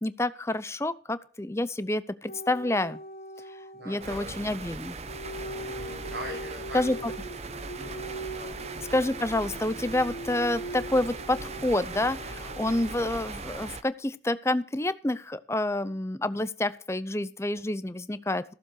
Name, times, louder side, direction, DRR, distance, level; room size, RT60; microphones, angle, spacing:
voice 1, 0.0-3.0 3.9-5.0 6.7-7.1 8.9-18.5, left 1 dB, 15° left, 14 dB, 0.6 m, -28 dB
sound 1, 2.3-4.2 5.1-13.2, right 1 dB, 50° left, 1.4 m, -41 dB
voice 2, 3.7-4.6 5.5-6.8 7.7-8.5, equal, 70° right, -1 dB, 6.8 m, -42 dB
sound 2, 4.0-13.8, right 3 dB, 35° right, 0.9 m, -39 dB
15.0 x 7.6 x 6.3 m, 0.41 s
head